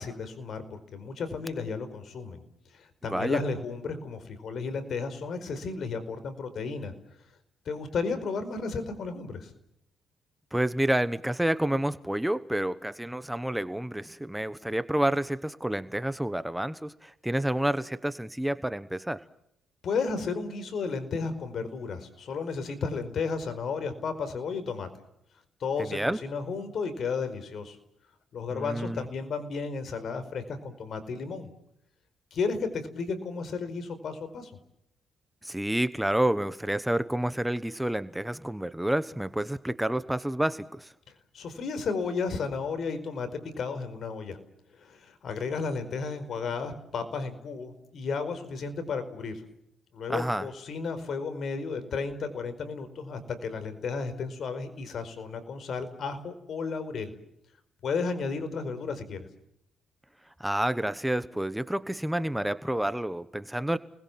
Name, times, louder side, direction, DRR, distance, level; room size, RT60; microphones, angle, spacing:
voice 1, 0.0-2.4 2.7-6.9 7.6-9.5 19.8-24.9 25.6-27.8 28.3-31.5 32.3-34.5 41.3-44.4 44.8-49.4 49.9-57.1 57.8-59.2, left 4 dB, 60° left, 10 dB, 4.9 m, -33 dB
voice 2, 3.0-3.4 10.5-19.2 25.8-26.2 28.5-29.0 35.4-40.9 50.1-50.5 60.4-63.8, right 1 dB, 5° right, 13 dB, 1.1 m, -29 dB
30.0 x 21.0 x 7.5 m, 0.77 s
cardioid pair, 90°, 0 cm